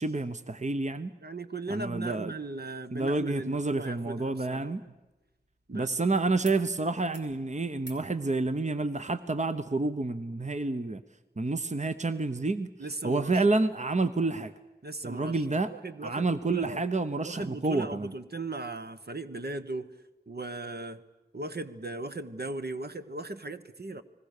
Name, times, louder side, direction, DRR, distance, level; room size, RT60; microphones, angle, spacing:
voice 1, 0.0-1.1 1.7-2.3 2.9-4.8 5.7-11.0 11.4-12.7 13.0-14.5 15.0-15.7 16.0-18.1, right 3 dB, 45° right, 10 dB, 0.9 m, -29 dB
voice 2, 1.2-4.8 5.7-6.0 12.8-13.4 14.8-16.8 17.2-19.9 20.3-21.0 21.3-24.0, right 2 dB, 65° right, 9 dB, 1.2 m, -38 dB
sound 1, 4.2-6.0 6.4-6.6 6.9-7.3 7.8-8.1 9.4-9.5, right 2 dB, 90° right, 3.3 m, -52 dB
30.0 x 20.5 x 6.7 m, 1.1 s
wide cardioid pair, 45°, 17 cm